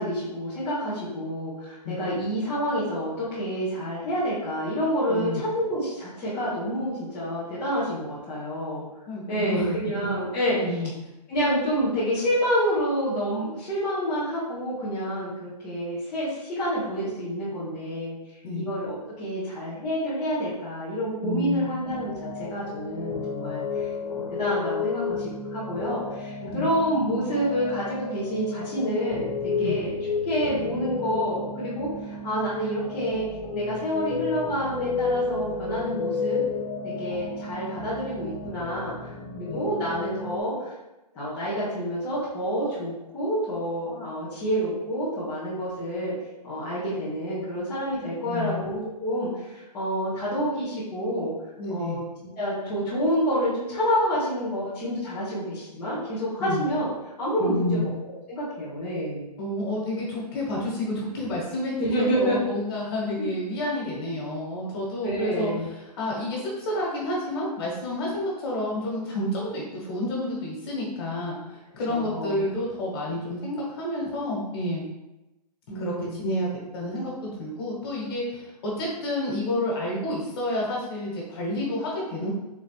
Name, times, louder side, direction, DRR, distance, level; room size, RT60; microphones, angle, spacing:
voice 1, 0.0-8.8 9.3-10.6 11.3-18.2 18.5-29.9 30.3-33.2 33.5-36.4 36.8-40.7 41.1-46.1 46.4-51.3 51.7-52.0 52.4-56.9 57.2-57.9 58.3-59.3 61.8-62.4 63.2-63.4 65.0-65.7 71.9-72.4 75.7-76.2, equal, 5° left, -12 dB, 0.4 m, -28 dB
voice 2, 5.1-5.4 9.1-10.1 10.5-10.9 18.4-18.7 21.2-21.8 26.5-26.7 29.6-29.8 39.5-39.6 48.3-48.8 51.6-52.0 56.4-56.7 57.4-57.9 59.4-74.8 75.7-82.3, left 1 dB, 35° left, -3 dB, 1.3 m, -30 dB
sound 1, 21.8-40.4, left 4 dB, 60° left, 1.1 m, -32 dB
3.8 x 3.1 x 3.2 m, 0.97 s
hypercardioid pair, 165°, 21 cm